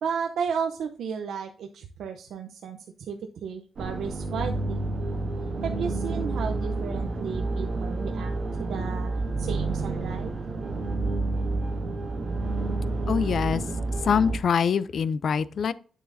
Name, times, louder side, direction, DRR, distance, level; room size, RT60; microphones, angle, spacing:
voice 1, 0.0-4.8 5.6-10.3, right 6 dB, 75° right, 0.7 m, -33 dB
sound 1, 3.8-14.4, right 2 dB, 50° right, 1.7 m, -29 dB
voice 2, 13.1-13.6 14.0-15.7, left 7 dB, 50° left, 0.4 m, -24 dB
9.4 x 7.0 x 2.6 m
wide cardioid pair, 175°, 0 cm